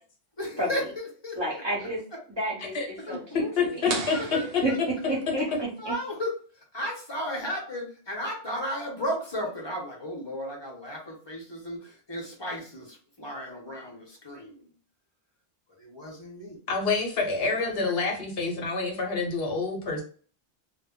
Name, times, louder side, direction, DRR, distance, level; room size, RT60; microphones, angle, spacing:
voice 1, 0.4-2.2 2.7-3.5 3.9-4.8 5.1-5.2 5.8-6.3 6.7-14.7 15.8-16.6 17.4-17.9, equal, 30° left, -1 dB, 0.7 m, -35 dB
voice 2, 1.4-2.0 2.3-3.4 3.8-4.1 4.6-4.7 5.1-5.9, right 1 dB, 25° right, -5 dB, 0.8 m, -30 dB
voice 3, 3.6-4.6 16.7-20.0, left 4 dB, 70° left, 1 dB, 0.9 m, -27 dB
sound 1, 3.9-5.6, right 4 dB, 70° right, 0.8 m, -36 dB
2.1 x 2.0 x 3.6 m, 0.42 s
omnidirectional pair, 1.1 m